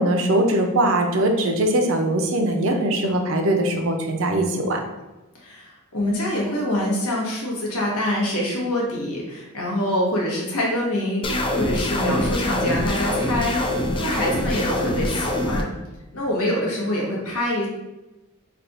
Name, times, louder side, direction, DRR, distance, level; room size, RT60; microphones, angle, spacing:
voice 1, 0.0-4.8, right 1 dB, 65° right, 4 dB, 0.5 m, -21 dB
voice 2, 5.4-15.7 16.1-17.7, left 1 dB, 90° left, -3 dB, 1.2 m, -25 dB
sound 1, 11.2-15.6, left 1 dB, 25° left, 0.3 m, -24 dB
3.3 x 2.3 x 4.0 m, 1.1 s
head